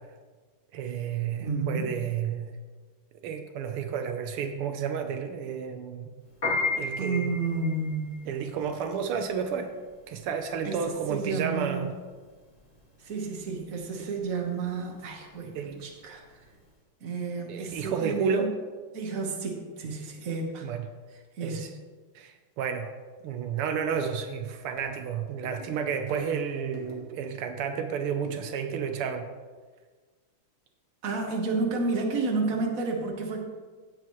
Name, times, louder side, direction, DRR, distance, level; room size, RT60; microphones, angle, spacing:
voice 1, 0.7-2.5 3.2-6.1 6.8-7.3 8.2-9.7 10.1-11.9 15.4-15.8 17.5-18.5 20.6-20.9 21.4-21.7 22.1-22.9 23.2-29.3, right 7 dB, 85° right, 6 dB, 1.7 m, -31 dB
voice 2, 1.4-1.9 7.0-8.3 10.6-11.9 13.0-16.2 17.0-18.5 18.9-20.7 21.4-21.7 31.0-33.4, right 3 dB, 45° right, 1 dB, 1.6 m, -31 dB
Piano, 6.3-16.7, left 3 dB, 35° left, 3.3 m, -35 dB
sound 1, 24.6-27.2 28.2-28.7, left 3 dB, 65° left, 2.4 m, -49 dB
16.5 x 7.2 x 3.1 m, 1.4 s
omnidirectional pair, 2.4 m